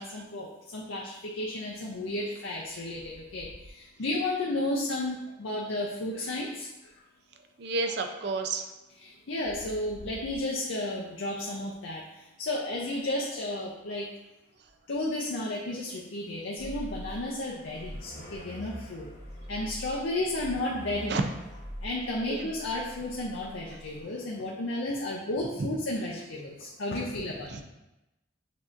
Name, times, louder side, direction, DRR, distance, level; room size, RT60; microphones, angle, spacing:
voice 1, 0.0-6.7 9.0-12.0 12.4-14.1 14.9-19.1 19.5-21.2 21.8-27.5, left 1 dB, 75° left, -2 dB, 0.5 m, -33 dB
voice 2, 7.6-8.7 21.1-21.2 22.3-22.5 25.6-25.7 27.5-27.6, right 3 dB, 55° right, 5 dB, 0.4 m, -31 dB
sound 1, 16.6-24.0, equal, 40° left, 0.8 m, -44 dB
6.8 x 2.8 x 2.5 m, 0.98 s
head